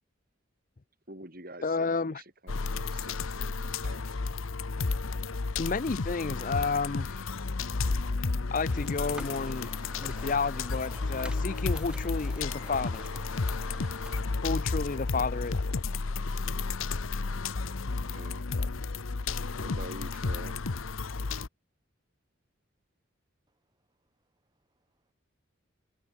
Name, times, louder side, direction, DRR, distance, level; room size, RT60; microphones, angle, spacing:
voice 1, 1.1-4.2 17.9-18.4 19.5-20.6, right 1 dB, 45° right, 6.4 m, -47 dB
voice 2, 1.6-2.2 5.6-7.2 8.5-9.7 10.0-13.1 14.4-15.6, left 4 dB, 40° left, 0.5 m, -31 dB
sound 1, 2.5-21.5, left 3 dB, 85° left, 0.9 m, -32 dB
sound 2, 8.7-14.2, right 1 dB, 5° right, 5.4 m, -48 dB
voice 3, 23.5-24.1 24.4-25.1, right 2 dB, 20° right, 6.1 m, -81 dB
head